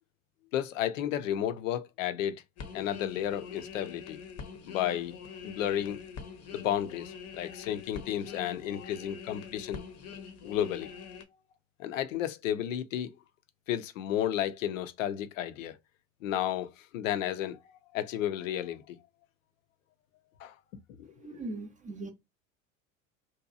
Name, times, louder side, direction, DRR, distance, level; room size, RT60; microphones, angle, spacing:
voice 1, 0.5-2.4 2.7-4.2 4.7-5.2 5.4-6.0 6.5-9.8 10.4-11.0 11.8-13.1 13.7-15.8 16.2-17.6 17.9-19.0 20.4-20.5 21.0-21.4, left 11 dB, 75° left, 0.5 m, -32 dB
sound 1, 2.6-11.2, left 6 dB, 40° left, 0.7 m, -45 dB
voice 2, 21.2-22.1, right 2 dB, 20° right, 0.6 m, -39 dB
2.7 x 2.2 x 2.4 m
hypercardioid pair, 75°, 39 cm